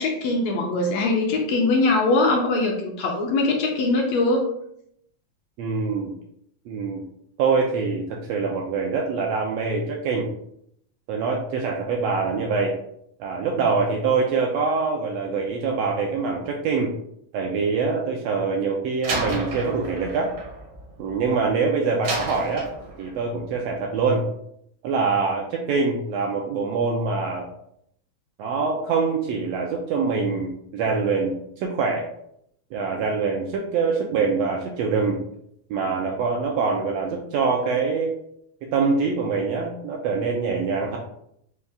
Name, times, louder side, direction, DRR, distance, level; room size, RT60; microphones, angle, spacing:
voice 1, 0.0-4.5, left 2 dB, 75° left, 1 dB, 1.7 m, -22 dB
voice 2, 5.6-6.1 6.7-7.0 7.4-10.3 11.1-12.8 13.2-16.9 17.3-20.3 21.0-22.7 23.0-24.2 24.8-27.5 28.4-32.0 32.7-35.2 35.7-38.1 38.6-41.0, right 4 dB, 80° right, 0 dB, 1.5 m, -24 dB
Slam, 19.0-21.5 22.0-23.3, right 2 dB, 65° right, 1.4 m, -32 dB
5.4 x 2.3 x 3.4 m, 0.72 s
omnidirectional pair, 3.4 m